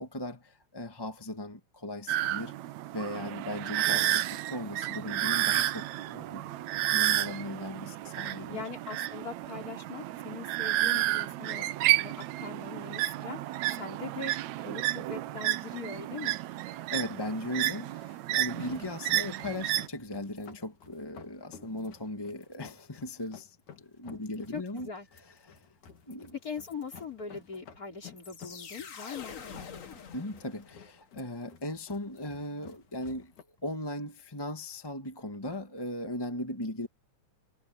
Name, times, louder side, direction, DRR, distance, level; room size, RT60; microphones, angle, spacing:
voice 1, 0.0-2.6 2.9-8.6 16.6-24.9 25.1-25.6 26.1-26.3 30.1-33.3 33.6-36.9, left 1 dB, 10° left, 1.1 m, -38 dB
sound 1, 2.1-19.9, right 15 dB, 75° right, 2.0 m, -31 dB
voice 2, 3.8-4.3 8.5-11.7 11.9-13.4 13.7-14.3 14.6-16.4 18.8-19.3 24.1-24.2 24.5-25.1 26.4-30.0, left 5 dB, 30° left, 4.2 m, -42 dB
sound 2, 18.6-33.4, left 7 dB, 90° left, 4.2 m, -54 dB
sound 3, 28.2-31.0, left 6 dB, 75° left, 0.7 m, -45 dB
omnidirectional pair, 3.4 m